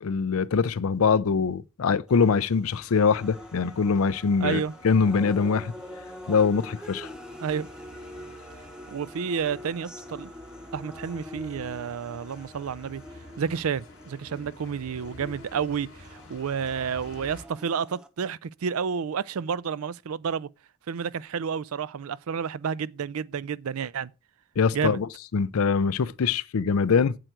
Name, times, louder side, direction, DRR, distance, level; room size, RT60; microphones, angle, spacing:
voice 1, 0.0-5.7 6.3-7.1 24.6-27.2, left 5 dB, 75° left, 0.5 m, -23 dB
sound 1, 2.1-18.1, equal, 5° right, 0.6 m, -45 dB
sound 2, 2.6-17.5, left 2 dB, 60° left, 2.8 m, -50 dB
voice 2, 4.4-4.7 7.4-7.7 8.9-10.3 10.7-13.0 13.4-20.5 20.9-24.1 24.7-25.0, right 6 dB, 80° right, 0.4 m, -30 dB
8.1 x 7.7 x 4.5 m
head